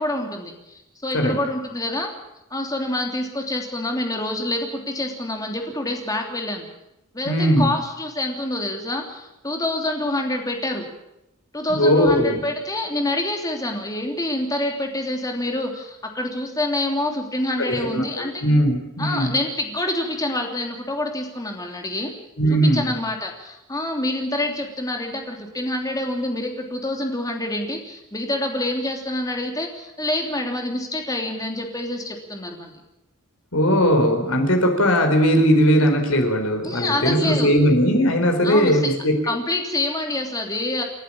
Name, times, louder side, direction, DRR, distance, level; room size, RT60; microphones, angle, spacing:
voice 1, 0.0-2.1 2.5-6.7 7.1-10.8 11.5-18.4 19.0-22.1 22.5-32.7 36.6-37.5 38.4-38.9 39.2-40.8, left 1 dB, 15° left, 2 dB, 3.1 m, -27 dB
voice 2, 7.2-7.7 11.7-12.4 17.7-19.4 22.4-22.9 33.5-39.1, equal, 75° left, 5 dB, 4.4 m, -19 dB
29.5 x 11.5 x 8.8 m, 0.88 s
head